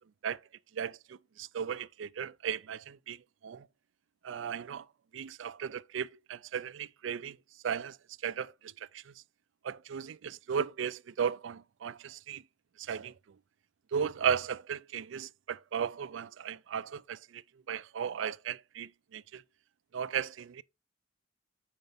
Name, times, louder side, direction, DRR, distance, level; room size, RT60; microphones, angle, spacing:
voice 1, 0.7-3.2 3.4-3.7 4.2-4.9 5.1-7.4 7.6-8.0 8.2-9.1 9.6-12.4 12.8-13.1 13.9-17.4 17.7-19.4 19.9-20.6, right 7 dB, 80° right, 0.4 m, -36 dB
9.4 x 5.2 x 3.5 m
head